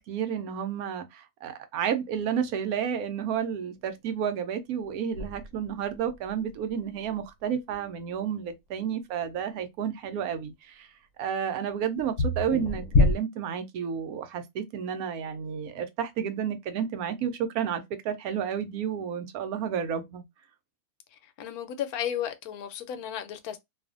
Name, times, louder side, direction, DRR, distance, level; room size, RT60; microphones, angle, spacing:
voice 1, 0.0-10.9 11.2-20.2, right 8 dB, 80° right, 1.1 m, -31 dB
sound 1, 2.1-3.8 4.8-4.9 5.1-6.7 7.0-7.2 7.7-7.8 9.8-9.9 12.0-13.2, left 2 dB, 70° left, 0.9 m, -27 dB
voice 2, 21.4-23.6, left 10 dB, 85° left, 1.1 m, -33 dB
2.6 x 2.4 x 2.4 m
omnidirectional pair, 1.5 m